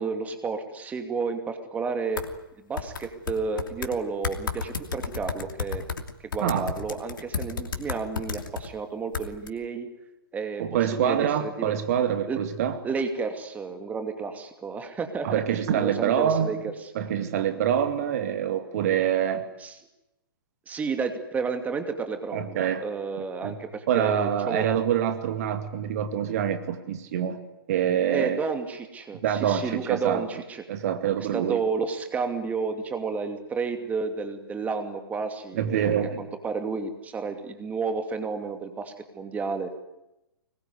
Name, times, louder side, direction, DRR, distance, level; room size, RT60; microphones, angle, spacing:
voice 1, 0.0-2.2 2.6-5.8 6.3-9.9 10.3-10.6 11.0-11.7 12.3-12.4 12.8-15.4 15.7-16.6 16.8-16.9 19.6-19.7 20.7-24.6 28.1-30.6 31.3-35.8 36.2-39.7, right 5 dB, 10° right, 7 dB, 2.6 m, -31 dB
sound 1, 2.2-2.3 2.8-3.9 4.2-8.7 9.1-9.5, left 6 dB, 60° left, 2.8 m, -32 dB
voice 2, 6.4-6.7 10.6-12.8 15.2-16.6 16.9-19.4 22.3-22.8 23.4-23.6 23.9-27.4 27.7-28.4 29.1-30.3 30.7-31.6 35.5-36.2, right 9 dB, 45° right, 8 dB, 2.4 m, -25 dB
25.0 x 21.5 x 9.8 m, 0.92 s
figure-of-eight pair, 115°, 12 cm